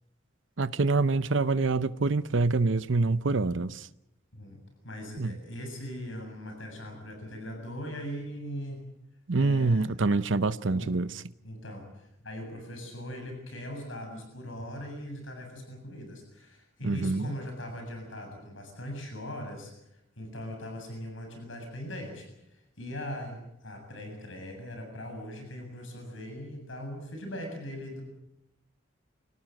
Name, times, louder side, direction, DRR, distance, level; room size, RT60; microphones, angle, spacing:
voice 1, 0.6-3.9 5.2-5.4 9.3-11.1 16.8-17.3, right 3 dB, 70° right, 0.8 m, -26 dB
voice 2, 4.8-8.8 9.4-9.9 10.7-10.9 11.4-19.7 20.2-28.0, equal, 75° left, 7.4 m, -40 dB
26.0 x 18.0 x 7.8 m
head